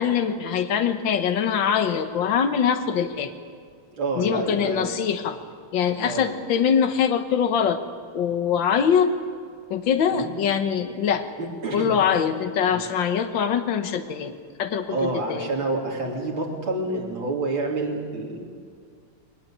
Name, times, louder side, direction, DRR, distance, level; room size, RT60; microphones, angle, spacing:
voice 1, 0.0-3.3 4.2-5.4 5.7-7.8 8.1-9.1 9.7-11.3 11.7-15.5, left 7 dB, 75° left, 7 dB, 1.9 m, -23 dB
voice 2, 4.0-4.9 6.0-6.3 10.1-10.3 11.4-12.0 12.7-12.8 14.9-18.5, right 2 dB, 85° right, -2 dB, 3.9 m, -28 dB
22.0 x 19.5 x 8.8 m, 2.2 s
omnidirectional pair, 2.1 m